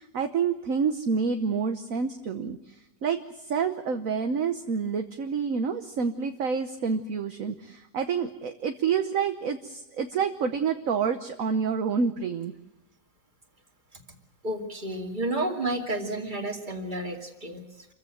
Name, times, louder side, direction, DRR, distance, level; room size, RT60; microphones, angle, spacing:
voice 1, 0.0-12.5, right 6 dB, 55° right, 7 dB, 1.3 m, -28 dB
voice 2, 14.4-17.9, right 1 dB, 25° right, 4 dB, 2.7 m, -31 dB
27.0 x 15.5 x 9.2 m, 0.95 s
omnidirectional pair, 2.0 m